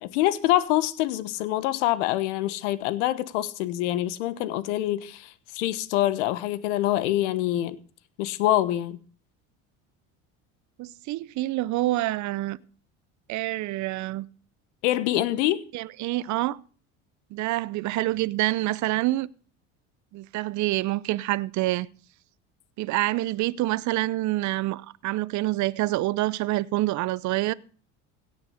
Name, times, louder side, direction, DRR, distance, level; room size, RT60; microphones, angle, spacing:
voice 1, 0.0-7.8 8.2-9.0 14.8-15.6, left 14 dB, 80° left, 1.2 m, -25 dB
voice 2, 10.8-12.6 13.3-14.3 15.7-16.6 17.3-19.3 20.1-21.9 22.8-27.5, right 17 dB, 55° right, 0.7 m, -27 dB
17.0 x 6.1 x 6.6 m
hypercardioid pair, 80°, 36 cm